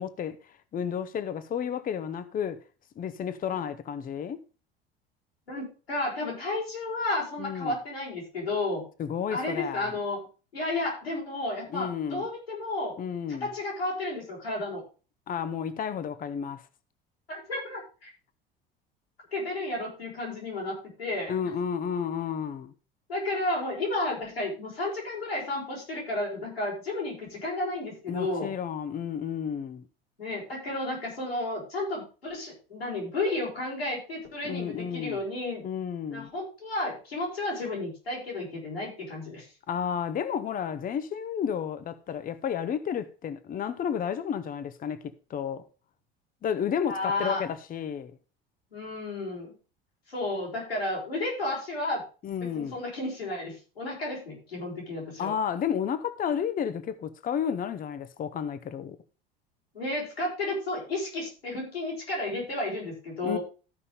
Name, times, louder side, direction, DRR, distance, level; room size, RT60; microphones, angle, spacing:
voice 1, 0.0-2.6 3.0-4.4 7.4-7.8 9.0-9.9 11.7-12.3 13.0-13.5 15.3-16.6 21.3-22.7 28.1-29.8 34.4-35.2 35.6-36.3 39.7-45.6 46.4-48.2 52.2-52.8 55.2-59.0 63.2-63.4, left 8 dB, 30° left, 0.9 m, -32 dB
voice 2, 5.5-8.9 9.3-10.2 10.5-13.0 13.4-14.8 17.3-18.1 19.3-21.5 23.1-28.5 30.2-35.6 36.1-39.5 46.9-47.4 48.7-49.5 50.1-52.0 52.4-55.3 59.7-63.4, left 2 dB, 85° left, 5.4 m, -32 dB
13.5 x 5.5 x 5.0 m
figure-of-eight pair, 70°, 29 cm